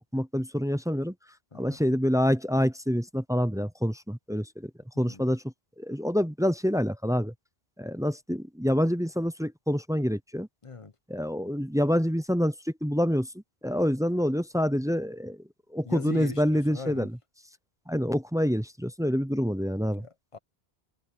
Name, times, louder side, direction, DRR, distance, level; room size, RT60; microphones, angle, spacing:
voice 1, 0.1-1.1 1.5-4.7 5.0-5.4 5.8-7.3 7.8-10.5 11.1-13.3 13.6-15.4 15.7-17.1 17.9-20.1, equal, 5° right, 0.6 m, -27 dB
voice 2, 4.9-5.3 10.6-10.9 15.8-17.1 20.0-20.4, left 4 dB, 35° left, 1.0 m, -40 dB
omnidirectional pair, 1.0 m